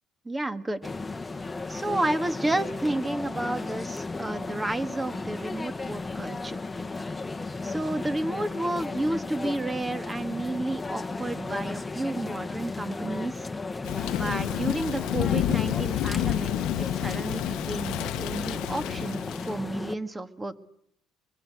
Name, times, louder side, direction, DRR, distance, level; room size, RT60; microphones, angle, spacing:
voice 1, 0.3-0.9 1.7-6.6 7.6-13.5 14.1-16.5 16.8-20.6, right 2 dB, 15° right, 10 dB, 1.9 m, -31 dB
sound 1, 0.8-19.9, left 3 dB, 15° left, 1.5 m, -35 dB
Thunder / Rain, 13.8-19.6, left 14 dB, 85° left, 1.1 m, -29 dB
25.5 x 23.0 x 8.0 m, 0.68 s
cardioid pair, 105°, 0 cm